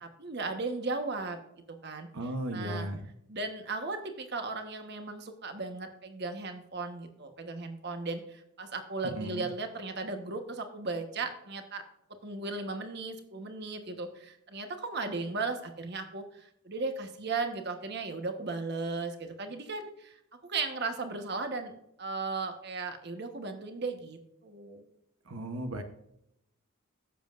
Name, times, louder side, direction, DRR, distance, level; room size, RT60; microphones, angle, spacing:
voice 1, 0.0-1.4 1.7-2.1 2.5-2.9 3.3-11.8 12.2-20.2 20.5-21.7 22.0-24.8, right 3 dB, 50° right, 6 dB, 1.2 m, -36 dB
voice 2, 2.1-3.1 9.0-9.5 25.3-25.8, right 1 dB, 80° right, 6 dB, 1.0 m, -35 dB
16.0 x 7.6 x 2.5 m, 0.78 s
head